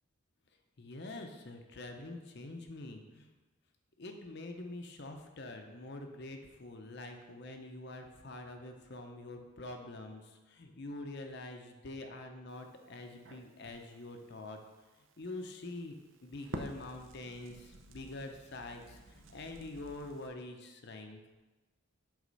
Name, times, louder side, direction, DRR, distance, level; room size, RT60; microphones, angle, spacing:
voice 1, 0.8-3.3 4.0-14.6 15.2-21.2, left 2 dB, 50° left, 4 dB, 0.7 m, -45 dB
Crackle, 12.5-20.3, right 2 dB, 60° right, 0.7 m, -51 dB
8.2 x 3.6 x 5.3 m, 1.2 s
head